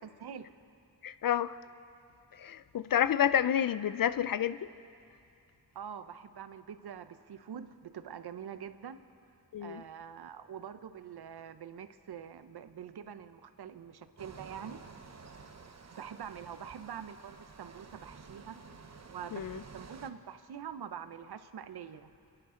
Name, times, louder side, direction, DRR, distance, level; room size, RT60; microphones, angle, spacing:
voice 1, 0.0-0.5 5.7-9.0 9.6-14.8 15.9-18.6 19.1-22.1, right 8 dB, 75° right, 0.7 m, -45 dB
voice 2, 1.0-1.6 2.3-4.7 9.5-9.8 19.3-19.6, left 10 dB, 60° left, 0.5 m, -29 dB
sound 1, 14.2-20.1, right 4 dB, 40° right, 0.9 m, -51 dB
27.0 x 11.0 x 3.8 m
cardioid pair, 60°, 39 cm